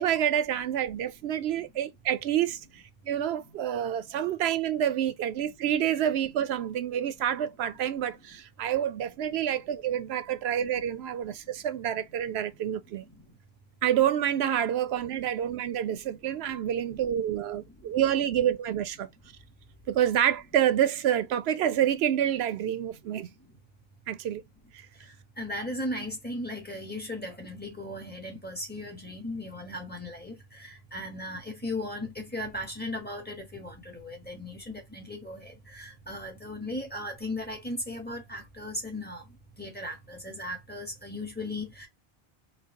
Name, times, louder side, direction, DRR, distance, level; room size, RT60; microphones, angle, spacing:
voice 1, 0.0-13.0 13.8-19.1 19.9-23.3 24.1-24.4, right 10 dB, 85° right, 0.8 m, -28 dB
voice 2, 16.5-17.0 17.5-17.6 23.1-23.2 24.9-41.9, left 1 dB, 10° left, 1.3 m, -37 dB
4.0 x 2.4 x 3.8 m
omnidirectional pair, 1.0 m